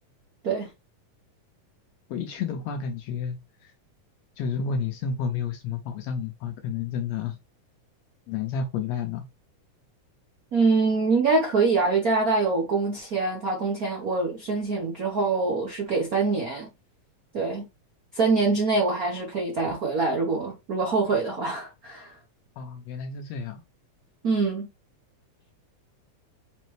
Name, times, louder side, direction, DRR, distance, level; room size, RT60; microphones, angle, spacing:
voice 1, 2.1-3.7 4.4-7.4 8.3-9.3 22.6-23.6, left 6 dB, 80° left, 1.6 m, -31 dB
voice 2, 10.5-16.7 17.3-17.6 18.1-22.2 24.2-24.7, right 3 dB, 80° right, 0.8 m, -24 dB
5.2 x 3.3 x 3.1 m
omnidirectional pair, 3.5 m